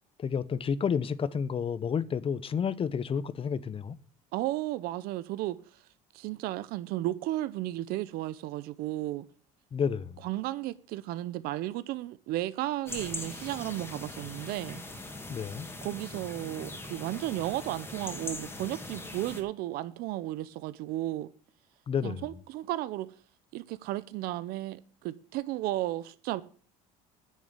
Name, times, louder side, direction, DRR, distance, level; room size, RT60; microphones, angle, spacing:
voice 1, 0.2-4.0 9.7-10.2 15.3-15.7 21.9-22.2, left 7 dB, 35° left, 0.9 m, -30 dB
voice 2, 4.3-5.6 6.1-9.2 10.2-14.8 15.8-21.3 22.0-23.1 23.5-26.4, right 15 dB, 70° right, 0.7 m, -34 dB
sound 1, 12.9-19.4, left 2 dB, 15° left, 2.7 m, -41 dB
9.9 x 6.6 x 8.8 m
supercardioid pair, 95°, 16 cm